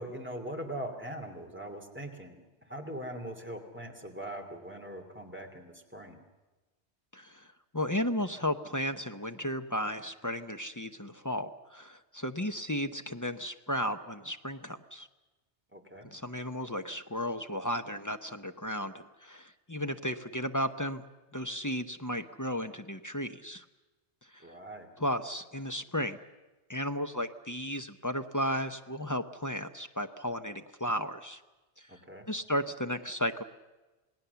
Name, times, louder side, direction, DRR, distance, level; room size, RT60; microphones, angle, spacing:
voice 1, 0.0-6.2 15.7-16.1 24.4-24.9 31.9-32.2, right 1 dB, 10° right, 3 dB, 2.8 m, -41 dB
voice 2, 7.1-7.5 7.7-15.1 16.0-21.0 21.3-23.6 24.3-24.5 25.0-26.2 26.7-31.4 31.8-32.0 32.3-33.4, equal, 20° left, 7 dB, 0.7 m, -34 dB
28.0 x 18.5 x 7.0 m, 1.2 s
omnidirectional pair, 1.1 m